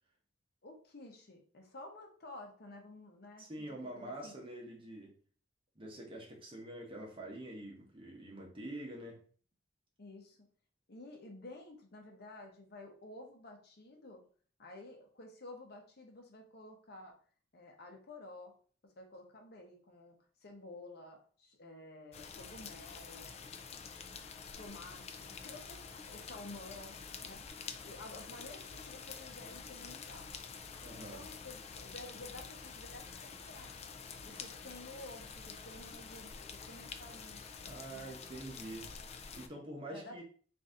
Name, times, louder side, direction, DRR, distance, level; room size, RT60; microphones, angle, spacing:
voice 1, 0.6-3.7 3.9-4.3 10.0-10.4 10.9-14.2 14.6-17.2 17.5-18.5 19.0-20.1 20.4-23.4 24.6-27.0 27.2-27.4 27.8-30.3 30.9-33.7 34.2-37.5 37.9-38.1 39.9-40.2, left 2 dB, 55° left, 2 dB, 0.9 m, -51 dB
voice 2, 3.4-5.1 5.8-9.2 30.8-31.2 37.6-38.9 39.4-40.2, right 1 dB, 25° right, -1 dB, 0.9 m, -46 dB
sound 1, 22.1-39.5, left 5 dB, 35° left, 0.3 m, -48 dB
3.8 x 2.7 x 3.7 m, 0.43 s
head